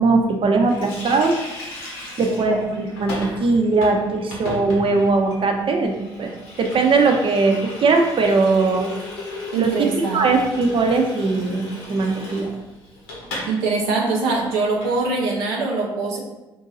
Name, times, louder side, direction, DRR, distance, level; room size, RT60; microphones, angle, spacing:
voice 1, 0.0-1.3 2.2-6.3 6.6-8.9 9.6-9.9 10.1-12.5, right 3 dB, 45° right, 3 dB, 0.8 m, -19 dB
Water tap faucet, 0.7-13.6 13.8-13.9 14.2-15.0, left 2 dB, 90° left, 1.0 m, -36 dB
voice 2, 9.5-10.2 13.5-16.2, right 3 dB, 80° right, -2 dB, 0.6 m, -23 dB
4.5 x 2.7 x 4.0 m, 1.0 s
hypercardioid pair, 50°, 12 cm